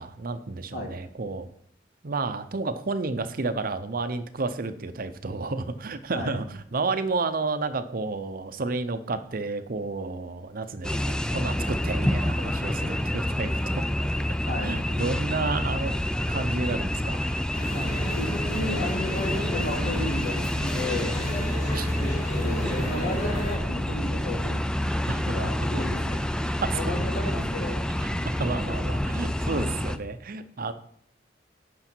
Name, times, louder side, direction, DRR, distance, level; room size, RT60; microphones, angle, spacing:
voice 1, 0.0-1.5 2.0-13.5 14.6-15.9 16.3-17.4 21.3-21.9 25.1-25.2 26.6-26.8 28.0-30.7, right 3 dB, 50° right, 10 dB, 0.7 m, -31 dB
sound 1, 10.8-30.0, left 1 dB, 5° left, 0.4 m, -28 dB
voice 2, 14.4-14.8 15.8-15.9 17.7-17.9 18.1-21.2 22.0-24.6 25.1-26.2 26.7-27.8, left 1 dB, 65° left, -1 dB, 2.7 m, -33 dB
sound 2, 17.5-23.6, equal, 45° left, 4.2 m, -34 dB
9.8 x 6.2 x 4.5 m, 0.65 s
head